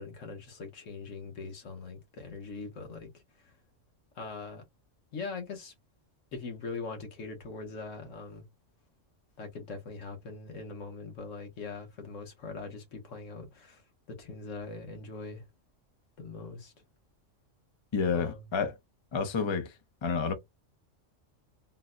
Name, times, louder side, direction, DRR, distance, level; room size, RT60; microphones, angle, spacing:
voice 1, 0.0-3.5 4.1-4.6 5.1-5.7 6.3-8.4 9.4-13.8 14.2-15.4 16.2-16.7 18.1-18.4, left 4 dB, 80° left, 1.4 m, -41 dB
voice 2, 17.9-18.7 19.1-19.7 20.0-20.3, left 5 dB, 30° left, 0.5 m, -29 dB
3.9 x 2.2 x 2.4 m
omnidirectional pair, 1.3 m